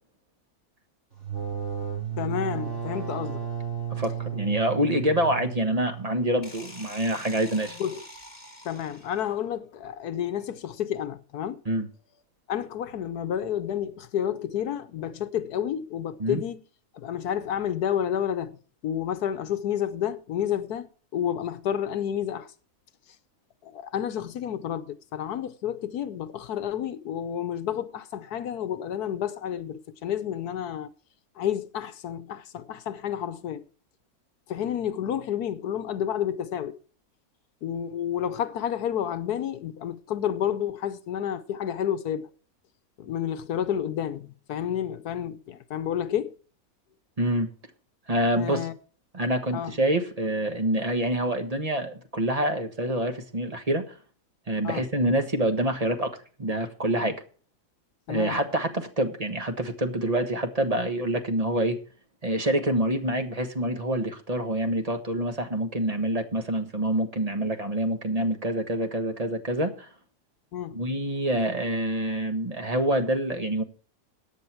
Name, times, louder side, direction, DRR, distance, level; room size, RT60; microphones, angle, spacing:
sound 1, 1.1-6.7, right 8 dB, 45° right, 6.8 m, -33 dB
voice 1, 2.2-3.5 7.7-8.0 8.6-11.6 12.5-16.6 16.9-18.6 18.8-22.5 23.6-30.9 31.4-33.6 34.5-36.8 37.6-42.3 43.0-46.4 48.3-48.7 49.5-49.8 54.6-54.8 58.1-58.4 70.5-70.8, left 9 dB, 80° left, 1.4 m, -30 dB
voice 2, 3.9-7.8 11.6-11.9 16.2-16.4 47.2-47.5 48.1-48.7 49.1-54.0 54.5-57.2 58.1-61.8 62.2-69.9 70.7-73.6, right 1 dB, 25° right, 1.4 m, -26 dB
sound 2, 6.4-9.3, left 1 dB, 25° left, 3.7 m, -45 dB
14.5 x 9.2 x 4.5 m
omnidirectional pair, 1.7 m